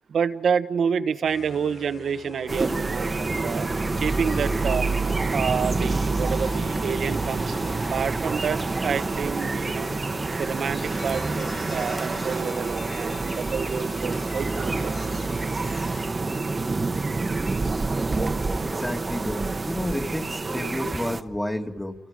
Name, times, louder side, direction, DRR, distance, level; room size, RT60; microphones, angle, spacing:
voice 1, 0.1-4.9 5.3-9.9 10.4-14.9, right 6 dB, 60° right, 11 dB, 1.1 m, -28 dB
sound 1, 1.2-16.1, left 4 dB, 50° left, 1.5 m, -44 dB
sound 2, 2.5-21.2, right 3 dB, 25° right, 1.1 m, -27 dB
voice 2, 18.6-22.0, left 1 dB, 5° left, 4 dB, 2.0 m, -30 dB
29.0 x 27.5 x 5.1 m, 1.1 s
cardioid pair, 95°, 0 cm